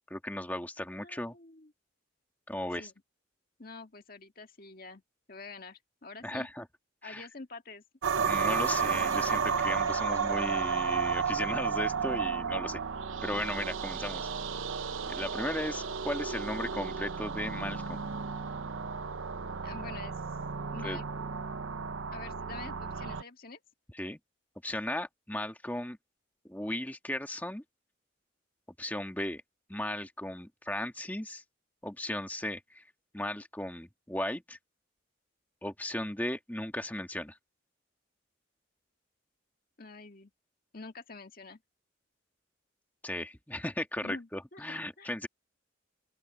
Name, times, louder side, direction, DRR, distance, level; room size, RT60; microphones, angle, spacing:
voice 1, 0.1-1.3 2.5-2.9 6.2-6.6 7.0-7.3 8.2-12.8 13.2-14.3 15.1-18.0 20.8-21.0 23.9-24.2 24.6-26.0 26.5-27.6 28.8-29.4 29.7-31.4 31.8-32.8 33.1-34.6 35.6-37.4 43.0-45.3, left 1 dB, 10° left, 1.7 m, -36 dB
voice 2, 1.0-1.7 2.7-2.9 3.6-5.0 5.3-6.5 7.0-7.8 19.6-20.2 20.7-21.1 22.1-23.6 39.8-40.3 40.7-41.6 44.0-45.1, left 3 dB, 45° left, 1.9 m, -46 dB
sound 1, 8.0-23.2, right 6 dB, 80° right, 0.8 m, -33 dB
open air
head